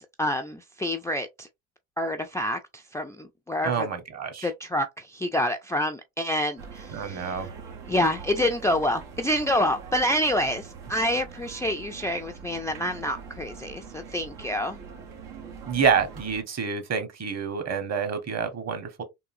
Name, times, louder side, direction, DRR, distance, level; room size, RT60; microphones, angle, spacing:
voice 1, 0.0-1.5 2.0-3.9 4.4-7.5 7.9-14.8, left 1 dB, 10° left, 0.3 m, -27 dB
voice 2, 3.6-4.5 6.9-7.5 15.7-19.0, right 6 dB, 45° right, 1.3 m, -27 dB
sound 1, 6.6-16.4, right 6 dB, 85° right, 1.2 m, -43 dB
3.7 x 2.6 x 2.6 m
supercardioid pair, 75°, 37 cm